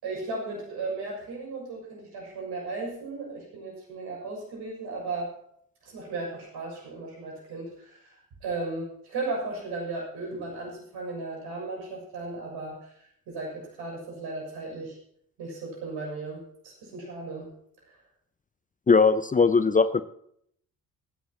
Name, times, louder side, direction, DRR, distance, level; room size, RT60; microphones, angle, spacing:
voice 1, 0.0-5.3 5.8-8.1 8.4-12.8 13.3-15.0 15.4-16.4 16.6-17.5, right 3 dB, 65° right, -2 dB, 7.1 m, -35 dB
voice 2, 18.9-20.0, left 4 dB, 20° left, 13 dB, 0.7 m, -20 dB
27.5 x 9.5 x 3.0 m, 0.68 s
hypercardioid pair, 50°, 41 cm